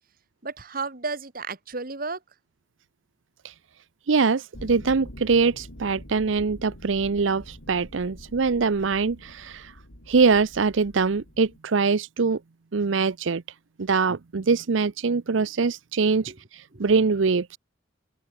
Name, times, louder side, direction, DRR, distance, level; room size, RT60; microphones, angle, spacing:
voice 1, 0.4-2.2 16.3-16.4 16.7-16.9, right 4 dB, 50° right, 1.9 m, -33 dB
voice 2, 4.1-9.7 10.1-12.4 12.7-13.4 13.8-17.6, right 4 dB, 80° right, 0.7 m, -23 dB
sound 1, 4.5-11.6, equal, 85° left, 5.3 m, -45 dB
open air
head